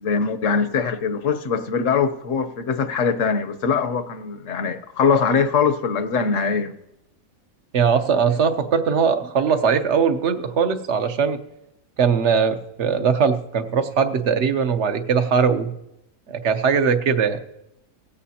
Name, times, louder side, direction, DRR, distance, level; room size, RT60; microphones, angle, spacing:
voice 1, 0.0-6.7, left 5 dB, 65° left, 1.2 m, -22 dB
voice 2, 7.7-11.4 12.0-15.7 16.3-17.4, right 6 dB, 55° right, 1.1 m, -20 dB
18.0 x 15.5 x 2.8 m
omnidirectional pair, 1.5 m